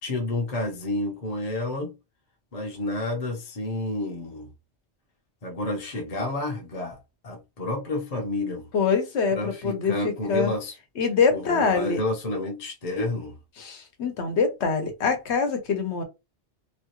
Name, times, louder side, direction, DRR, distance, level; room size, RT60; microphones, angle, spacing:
voice 1, 0.0-1.9 2.5-4.5 5.4-7.0 7.2-8.7 9.3-10.8 11.3-13.4, left 2 dB, 40° left, 0.7 m, -30 dB
voice 2, 8.7-10.5 11.0-12.0 13.6-16.0, left 5 dB, 75° left, 1.1 m, -24 dB
2.9 x 2.3 x 3.0 m
omnidirectional pair, 1.1 m